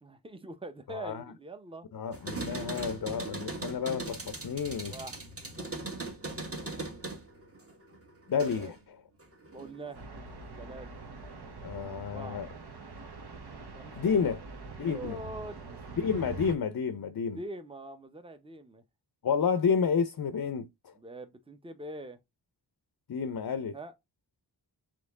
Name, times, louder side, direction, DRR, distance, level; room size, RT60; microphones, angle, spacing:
voice 1, 0.0-1.9 4.9-5.2 6.6-6.9 8.6-8.7 9.5-10.0 10.6-10.9 11.8-12.4 13.8-14.2 14.8-15.6 17.3-18.8 21.0-22.2 23.7-23.9, right 1 dB, 15° right, 0.7 m, -43 dB
voice 2, 0.9-1.2 1.9-5.0 8.3-9.0 11.6-12.5 14.0-14.4 14.8-15.2 16.0-17.4 19.2-20.9 23.1-23.8, left 6 dB, 55° left, 0.5 m, -30 dB
sound 1, 2.1-8.8 9.2-10.0, right 2 dB, 30° right, 1.5 m, -40 dB
sound 2, 9.9-16.5, right 4 dB, 65° right, 1.1 m, -44 dB
4.2 x 3.1 x 3.6 m
wide cardioid pair, 55°, 43 cm